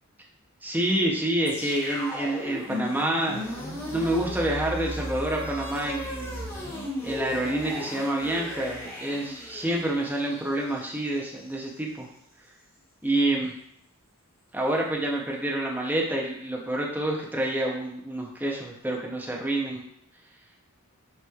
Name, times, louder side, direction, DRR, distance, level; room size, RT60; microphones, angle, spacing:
voice 1, 0.6-3.5 3.9-6.5 7.0-12.1 13.0-13.5 14.5-19.8, right 1 dB, 10° right, -1 dB, 0.6 m, -28 dB
sound 1, 1.4-11.6, left 1 dB, 10° left, 1.0 m, -36 dB
6.1 x 3.0 x 2.3 m, 0.71 s
head